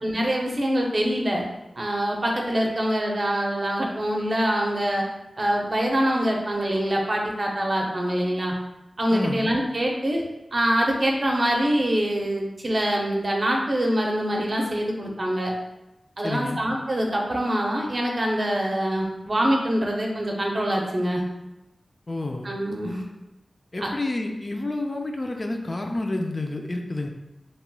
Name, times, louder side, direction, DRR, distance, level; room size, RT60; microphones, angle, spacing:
voice 1, 0.0-1.4 1.8-5.0 5.4-8.5 9.0-10.2 10.5-15.5 16.2-21.2 22.4-23.0 23.8-23.9, equal, 50° right, 0 dB, 0.6 m, -24 dB
voice 2, 9.1-9.5 16.2-16.6 22.1-22.5 23.7-27.1, left 2 dB, 40° left, 2 dB, 0.4 m, -29 dB
3.0 x 2.9 x 2.2 m, 0.95 s
cardioid pair, 50°, 0 cm